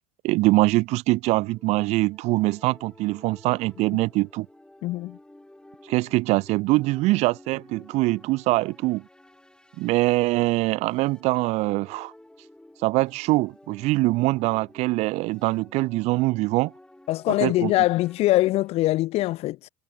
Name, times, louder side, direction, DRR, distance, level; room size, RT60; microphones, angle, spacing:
voice 1, 0.2-4.5 5.9-9.0 9.8-12.1 12.8-16.7 17.4-17.7, right 21 dB, 50° right, 0.5 m, -23 dB
sound 1, 1.4-18.7, left 1 dB, 5° left, 7.7 m, -52 dB
voice 2, 4.8-5.2 17.1-19.7, left 17 dB, 45° left, 0.5 m, -23 dB
hypercardioid pair, 75°, 15 cm